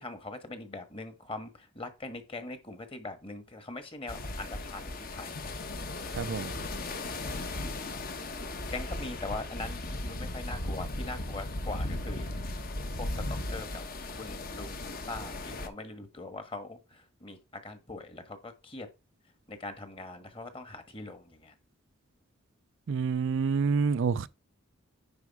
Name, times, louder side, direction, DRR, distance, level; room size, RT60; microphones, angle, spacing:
voice 1, 0.0-5.6 7.6-7.8 8.7-12.3 12.6-13.8 14.1-18.9 19.5-21.5, left 2 dB, 25° left, 1.4 m, -42 dB
sound 1, 4.1-15.7, left 2 dB, 45° left, 1.1 m, -36 dB
voice 2, 6.2-6.5 22.9-24.3, right 5 dB, 60° right, 0.4 m, -27 dB
9.6 x 4.9 x 4.8 m
head